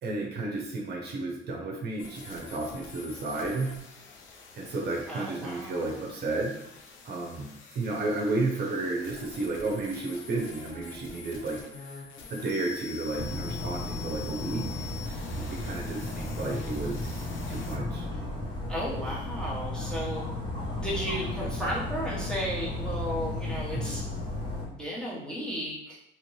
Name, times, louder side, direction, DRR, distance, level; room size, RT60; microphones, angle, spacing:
voice 1, 0.0-3.7 4.5-6.6 7.0-7.5 7.7-15.1 15.4-18.1 23.7-24.0, right 2 dB, 55° right, -1 dB, 0.7 m, -32 dB
sound 1, 2.0-17.8, left 5 dB, 80° left, 0.6 m, -46 dB
voice 2, 5.1-6.0 18.7-20.3 20.8-24.0 24.6-26.0, equal, 5° left, -6 dB, 1.2 m, -34 dB
Dog, 13.1-24.7, left 2 dB, 25° left, 1.3 m, -34 dB
2.9 x 2.5 x 3.1 m, 0.77 s
cardioid pair, 90°, 20 cm